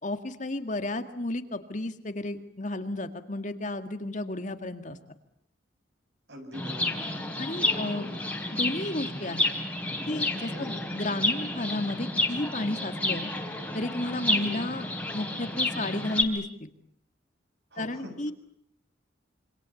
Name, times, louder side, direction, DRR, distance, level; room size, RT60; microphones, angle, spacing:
voice 1, 0.0-5.0 7.4-8.1 8.5-9.5 10.1-13.3 13.7-14.9 15.1-16.7 17.8-18.3, left 2 dB, 40° left, 8 dB, 2.1 m, -32 dB
voice 2, 6.3-7.0 7.5-8.2 10.5-10.7 14.3-14.5 17.7-18.2, equal, 65° right, 6 dB, 6.8 m, -42 dB
Chirp tweet, 6.5-16.2, left 2 dB, 10° left, 3.5 m, -30 dB
27.5 x 25.5 x 8.5 m, 0.68 s
head